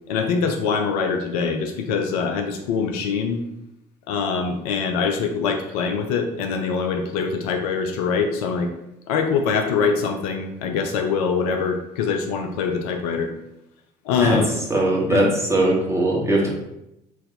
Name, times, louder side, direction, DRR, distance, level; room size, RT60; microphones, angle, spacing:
voice 1, 0.1-3.4 4.1-8.7 9.1-13.3 14.0-14.5 15.1-15.3, left 5 dB, 65° left, 5 dB, 0.5 m, -23 dB
voice 2, 14.7-16.5, right 1 dB, 10° right, -3 dB, 1.2 m, -20 dB
4.0 x 2.6 x 4.0 m, 0.85 s
figure-of-eight pair, 55°, 21 cm